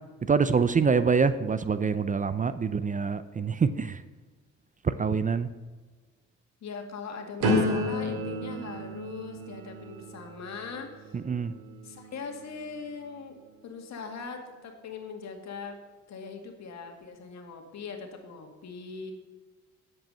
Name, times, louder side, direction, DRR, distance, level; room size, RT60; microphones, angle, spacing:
voice 1, 0.3-4.0 4.8-5.5 11.3-11.5, right 5 dB, 25° right, 13 dB, 0.5 m, -25 dB
voice 2, 6.6-11.2 11.8-15.8 16.1-19.1, left 5 dB, 65° left, 4 dB, 2.1 m, -41 dB
sound 1, 7.4-13.3 13.8-14.2, left 1 dB, 85° right, 2.9 m, -33 dB
10.5 x 7.8 x 5.6 m, 1.4 s
cardioid pair, 90°, 30 cm